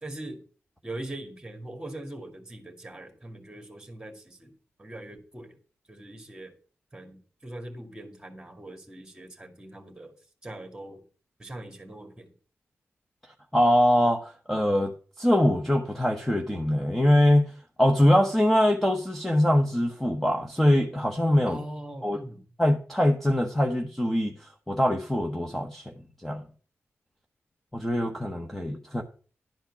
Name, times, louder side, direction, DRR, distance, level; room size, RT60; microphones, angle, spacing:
voice 1, 0.0-0.4 0.8-4.5 4.8-5.6 5.9-6.5 6.9-10.1 10.4-11.0 11.4-12.3 21.5-22.4, right 1 dB, 15° right, 2.1 m, -41 dB
voice 2, 13.5-17.5 17.8-21.6 22.0-22.2 22.6-24.3 24.7-25.9 26.2-26.4 27.7-29.0, left 1 dB, 5° left, 1.0 m, -23 dB
12.0 x 4.5 x 7.2 m
wide cardioid pair, 130°, 5 cm